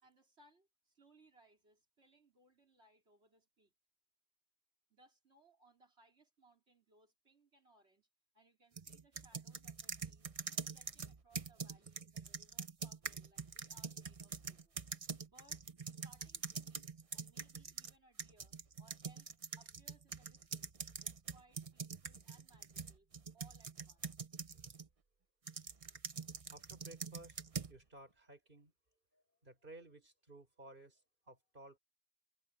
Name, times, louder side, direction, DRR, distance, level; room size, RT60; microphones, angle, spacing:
voice 1, 0.0-3.7 4.9-8.1 8.3-10.3 10.6-14.8 15.2-15.7 16.0-24.3, right 2 dB, 75° right, 4.2 m, -69 dB
sound 1, 8.8-17.9 18.2-24.9 25.5-27.7, right 5 dB, 35° right, 0.9 m, -45 dB
voice 2, 26.5-27.4 27.7-28.7 29.1-31.8, right 2 dB, 50° right, 4.8 m, -57 dB
omnidirectional pair, 1.1 m